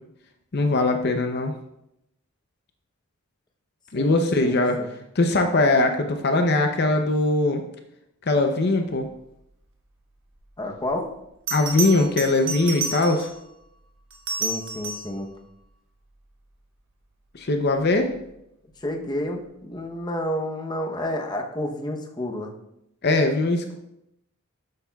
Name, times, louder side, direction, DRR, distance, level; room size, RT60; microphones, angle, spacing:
voice 1, 0.5-1.5 3.9-4.8 5.2-7.6 8.3-9.1 11.5-13.3 17.3-18.1 23.0-23.7, left 2 dB, 50° left, 5 dB, 0.6 m, -21 dB
voice 2, 3.9-5.0 10.6-11.1 14.4-15.3 18.8-22.5, left 1 dB, 20° left, 2 dB, 0.8 m, -30 dB
Bell, 10.8-10.9 11.5-13.4 14.1-15.2 17.9-18.1, right 4 dB, 60° right, 1.6 m, -30 dB
12.0 x 8.2 x 2.3 m, 0.83 s
head